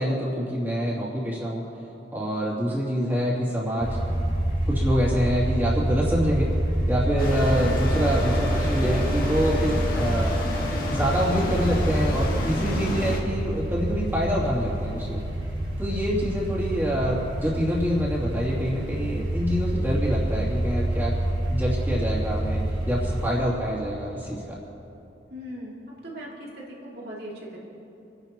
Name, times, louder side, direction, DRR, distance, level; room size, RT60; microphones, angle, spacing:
voice 1, 0.0-1.6 2.1-4.0 4.7-6.5 6.9-10.3 10.8-15.2 15.8-21.1 21.5-24.6, equal, 10° right, -7 dB, 2.8 m, -26 dB
sound 1, 3.8-23.3, right 1 dB, 25° right, 1.9 m, -27 dB
Wind instrument woodwind instrument, 7.1-11.3, left 2 dB, 5° left, 0.7 m, -37 dB
sound 2, 7.2-13.2, left 1 dB, 50° left, 1.8 m, -30 dB
voice 2, 25.3-25.8 26.0-27.6, equal, 55° right, -5 dB, 2.9 m, -39 dB
28.5 x 10.5 x 3.1 m, 2.8 s
head